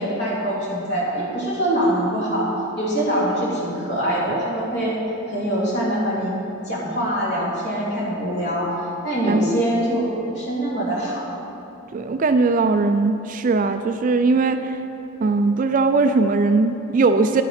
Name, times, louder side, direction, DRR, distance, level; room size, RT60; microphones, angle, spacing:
voice 1, 0.0-2.5 2.8-5.0 5.3-6.3 6.7-8.7 9.0-11.3, right 1 dB, 50° left, -5 dB, 2.4 m, -23 dB
voice 2, 11.9-14.8 15.2-17.4, right 3 dB, 35° right, 8 dB, 0.3 m, -19 dB
10.5 x 8.8 x 4.3 m, 3.0 s
head